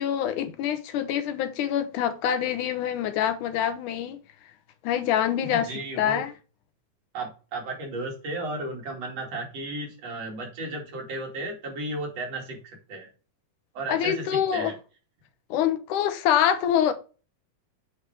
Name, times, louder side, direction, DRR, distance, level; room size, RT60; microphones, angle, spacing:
voice 1, 0.0-4.2 4.8-5.7 6.0-6.3 13.9-14.7 15.5-16.9, left 9 dB, 85° left, 2.5 m, -25 dB
voice 2, 5.5-6.2 7.1-13.1 13.8-14.7, right 2 dB, 55° right, 3.6 m, -34 dB
8.5 x 4.7 x 4.7 m
omnidirectional pair, 3.5 m